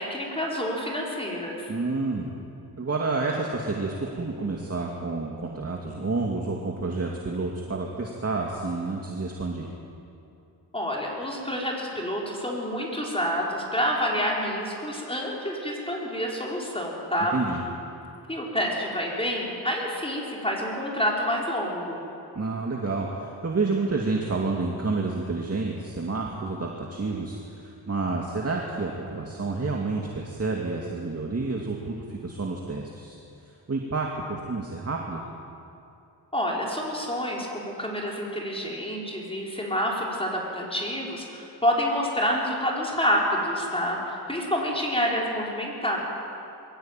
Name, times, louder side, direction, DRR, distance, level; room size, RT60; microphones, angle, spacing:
voice 1, 0.0-1.7 10.7-17.4 18.3-22.1 36.3-46.0, equal, 15° left, -3 dB, 5.2 m, -28 dB
voice 2, 1.7-2.3 2.8-9.7 17.3-17.6 22.3-33.2 33.5-35.2, right 3 dB, 35° right, 0 dB, 2.4 m, -29 dB
22.0 x 15.0 x 9.2 m, 2.7 s
cardioid pair, 65°, 40 cm